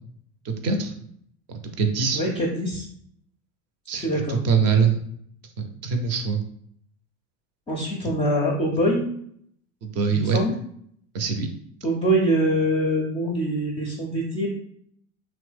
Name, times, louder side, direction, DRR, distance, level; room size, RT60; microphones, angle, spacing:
voice 1, 0.4-0.9 1.6-2.2 3.9-5.0 5.6-6.4 9.8-10.4 11.1-11.5, right 6 dB, 40° right, 6 dB, 0.6 m, -23 dB
voice 2, 2.1-2.9 3.9-4.4 7.7-9.0 10.1-10.6 11.8-14.5, equal, 15° left, -2 dB, 0.4 m, -24 dB
2.8 x 2.1 x 3.3 m, 0.66 s
hypercardioid pair, 75°, 41 cm